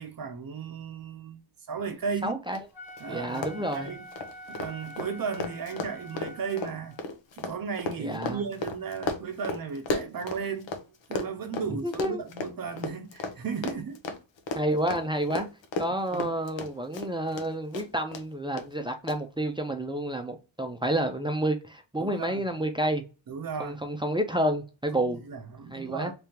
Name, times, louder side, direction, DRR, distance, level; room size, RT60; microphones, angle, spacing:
voice 1, 0.0-1.4 1.7-2.4 3.0-4.0 4.5-7.0 7.4-10.7 11.1-14.0 16.1-16.3 22.0-22.4 23.3-23.8 24.9-26.1, right 6 dB, 45° right, 0.7 m, -35 dB
voice 2, 2.2-2.6 3.1-3.9 8.0-8.4 11.8-12.2 14.5-15.5 15.8-23.0 23.6-25.2 25.7-26.1, right 1 dB, 10° right, 0.5 m, -29 dB
Run, 2.5-2.6 2.9-3.0 3.3-10.8 11.1-17.5 17.7-18.2 18.6-18.7 19.1-19.2, left 3 dB, 65° left, 0.9 m, -34 dB
Wind instrument woodwind instrument, 2.7-7.0, equal, 50° left, 1.3 m, -46 dB
3.5 x 3.4 x 2.9 m
cardioid pair, 105°, 48 cm